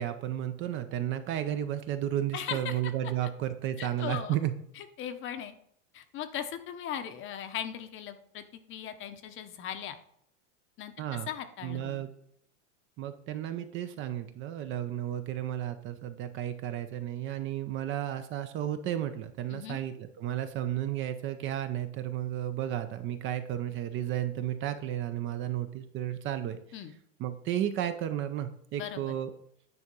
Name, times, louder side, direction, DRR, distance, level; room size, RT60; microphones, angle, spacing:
voice 1, 0.0-4.5 11.0-11.3 11.6-12.1 13.0-26.6 27.2-29.3, right 11 dB, 35° right, 10 dB, 0.5 m, -33 dB
voice 2, 2.3-2.8 3.8-4.4 4.8-5.5 5.9-10.0 10.8-10.9 11.3-12.0 19.5-19.8 26.7-26.9 28.8-29.1, left 9 dB, 30° left, 10 dB, 0.8 m, -38 dB
9.5 x 3.5 x 5.3 m, 0.69 s
supercardioid pair, 125°, 38 cm